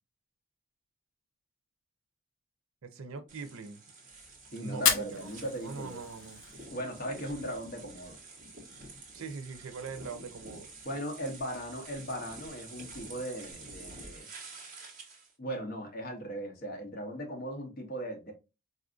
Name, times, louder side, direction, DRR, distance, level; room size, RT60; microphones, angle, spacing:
voice 1, 2.8-3.8 4.6-6.4 9.1-10.7, right 4 dB, 85° right, 0.5 m, -42 dB
sound 1, 3.3-15.3, right 3 dB, 40° right, 1.0 m, -49 dB
voice 2, 4.5-6.0 6.7-8.2 10.8-14.3 15.4-18.3, right 1 dB, 45° left, 0.9 m, -38 dB
Fire, 4.7-6.7, left 8 dB, 80° left, 0.5 m, -32 dB
4.1 x 2.5 x 2.4 m
head